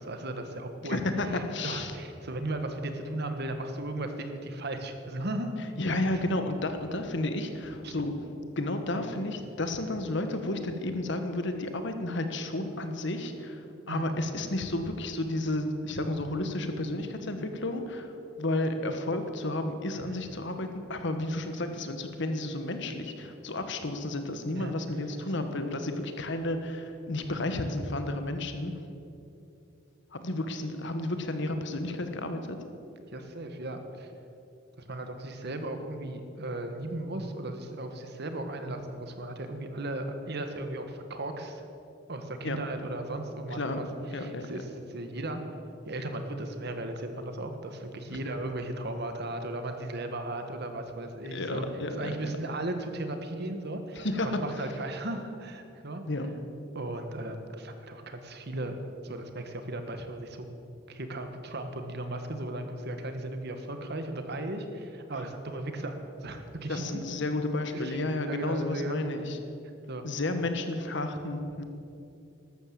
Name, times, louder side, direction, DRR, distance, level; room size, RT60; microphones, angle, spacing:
voice 1, 0.0-1.0 1.3-5.5 6.1-6.2 7.8-7.9 8.9-9.0 13.9-14.1 19.9-20.1 24.6-24.7 27.3-27.5 33.1-34.1 34.9-41.6 42.1-43.8 44.1-45.4 45.9-51.6 52.0-56.0 56.7-58.7 59.0-60.4 60.9-65.9 66.2-67.0 67.7-69.2 69.9-70.1, right 1 dB, 60° right, 7 dB, 1.6 m, -36 dB
voice 2, 0.8-1.9 5.8-8.1 8.6-28.7 30.1-32.6 42.4-42.6 43.5-43.9 44.1-44.5 51.3-52.1 53.9-54.3 54.6-54.7 56.1-56.3 66.7-69.4 70.0-71.6, left 2 dB, 65° left, 7 dB, 1.5 m, -32 dB
13.0 x 12.5 x 7.7 m, 2.7 s
head